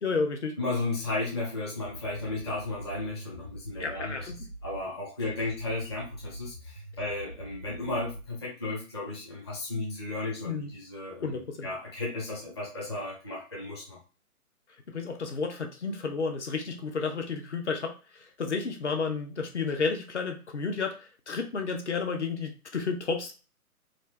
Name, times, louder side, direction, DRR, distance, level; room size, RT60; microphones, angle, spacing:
voice 1, 0.0-0.6 3.8-4.5 10.4-10.7 11.2-11.7 14.9-23.3, left 4 dB, 50° left, 5 dB, 0.9 m, -32 dB
voice 2, 0.6-4.3 4.6-14.0, left 2 dB, 20° left, -5 dB, 0.6 m, -34 dB
sound 1, 1.8-4.8 5.3-8.3, right 1 dB, 30° right, 0.4 m, -43 dB
4.2 x 2.5 x 3.3 m, 0.33 s
figure-of-eight pair, 140°, 45 cm